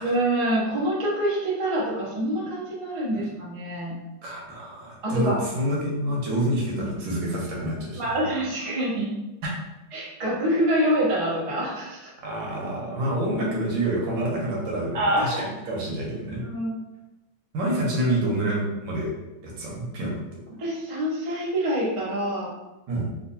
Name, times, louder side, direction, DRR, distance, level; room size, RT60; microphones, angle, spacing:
voice 1, 0.0-3.9 5.0-5.4 6.7-7.0 8.0-9.1 9.9-12.1 14.9-15.4 16.4-16.7 20.6-22.5, right 1 dB, 55° right, -5 dB, 0.3 m, -26 dB
voice 2, 4.2-8.0 12.2-16.4 17.5-19.1 19.4-20.2 22.9-23.1, right 1 dB, 80° right, -3 dB, 1.6 m, -27 dB
3.8 x 2.6 x 2.7 m, 1.0 s
omnidirectional pair, 2.1 m